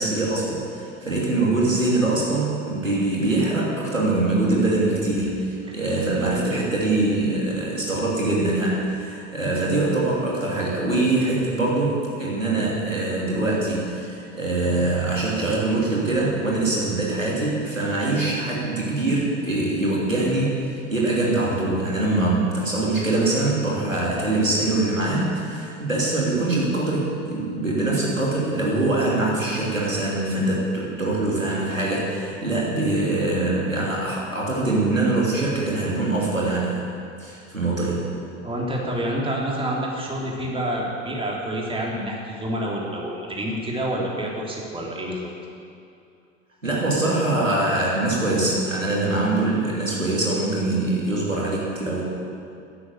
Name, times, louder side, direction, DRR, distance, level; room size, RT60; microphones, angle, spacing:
voice 1, 0.0-36.8 37.2-38.1 46.6-52.0, right 2 dB, 85° right, -4 dB, 2.9 m, -23 dB
voice 2, 38.4-45.3, right 1 dB, 15° right, -2 dB, 3.1 m, -28 dB
13.0 x 10.5 x 8.1 m, 2.5 s
figure-of-eight pair, 75°, 38 cm